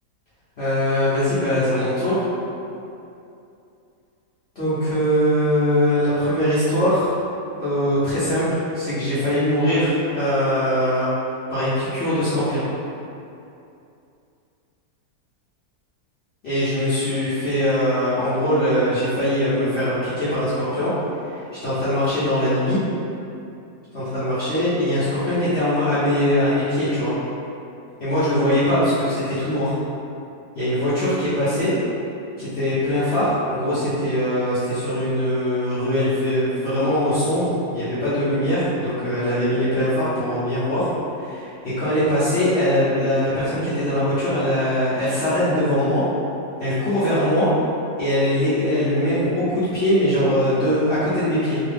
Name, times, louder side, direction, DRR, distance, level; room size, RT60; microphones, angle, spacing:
voice 1, 0.6-2.2 4.5-7.1 7.6-12.6 16.4-20.9 21.2-22.8 23.9-27.1 28.0-29.8 30.5-31.7 32.4-40.9 41.2-46.0 46.6-47.5 48.0-51.6, equal, 50° left, -15 dB, 0.9 m, -21 dB
2.9 x 2.3 x 3.3 m, 2.7 s
omnidirectional pair, 1.7 m